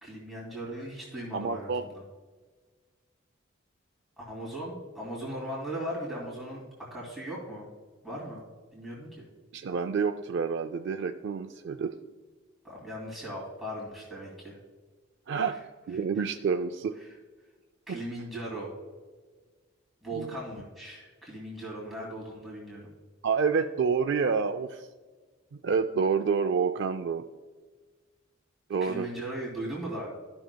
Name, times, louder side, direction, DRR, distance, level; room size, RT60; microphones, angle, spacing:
voice 1, 0.0-2.0 4.2-6.6 6.9-7.7 8.0-8.4 8.7-9.2 12.6-14.6 17.0-17.1 17.9-18.7 20.0-22.9 28.8-30.1, right 1 dB, ahead, -6 dB, 2.4 m, -38 dB
voice 2, 1.3-1.8 9.5-11.9 15.3-15.6 15.9-17.0 17.9-18.0 20.1-20.3 23.2-24.9 25.5-27.2 28.7-29.1, right 5 dB, 55° right, 6 dB, 0.3 m, -28 dB
14.0 x 6.2 x 2.2 m, 1.4 s
head